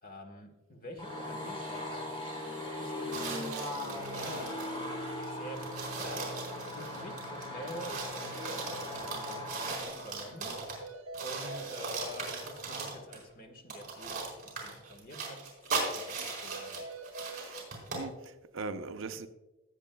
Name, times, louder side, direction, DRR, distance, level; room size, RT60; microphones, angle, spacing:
voice 1, 0.0-2.1 2.8-3.6 4.1-6.5 6.7-10.6 11.2-16.9, left 1 dB, 45° left, 1.4 m, -47 dB
sound 1, 1.0-9.8, left 1 dB, 25° left, 3.7 m, -39 dB
sound 2, 3.1-4.7 5.2-5.3 5.6-10.9 11.1-13.2 13.7-18.1, right 4 dB, 40° right, 4.1 m, -38 dB
sound 3, 9.6-9.7 9.9-10.1 10.3-10.4 10.8-11.8 16.5-17.5, right 3 dB, 80° right, 1.0 m, -44 dB
voice 2, 17.9-19.3, right 3 dB, 65° right, 0.6 m, -40 dB
19.5 x 8.3 x 2.3 m
head